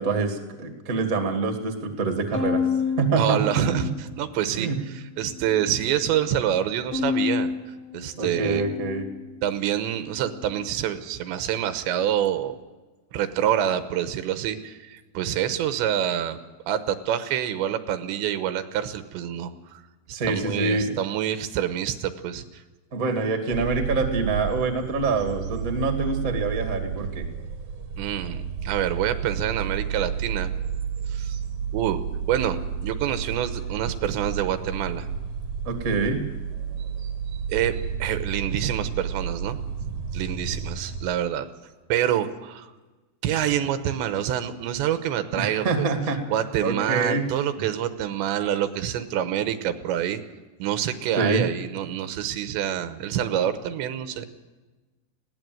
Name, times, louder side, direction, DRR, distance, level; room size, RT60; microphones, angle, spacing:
voice 1, 0.0-2.6 3.0-3.9 4.5-4.8 8.1-9.1 20.1-20.9 22.9-27.3 35.6-36.2 45.4-46.2 46.6-47.3 51.2-51.4 52.0-52.1, right 4 dB, 30° right, 5 dB, 1.8 m, -26 dB
Bowed string instrument, 2.3-4.7 5.2-5.9 6.9-9.4, left 5 dB, 50° left, 6.8 m, -30 dB
voice 2, 3.2-7.5 7.9-8.7 9.4-12.6 13.1-16.4 16.7-19.8 20.1-22.6 28.0-30.5 31.1-31.4 31.7-32.0 32.3-35.1 37.5-37.7 38.0-41.5 41.9-42.7 43.2-45.9 46.3-50.2 50.6-54.3, right 10 dB, 85° right, 10 dB, 3.4 m, -27 dB
sound 1, 23.5-41.1, right 7 dB, 55° right, 2.2 m, -31 dB
20.5 x 17.0 x 7.9 m, 1.2 s
omnidirectional pair, 5.0 m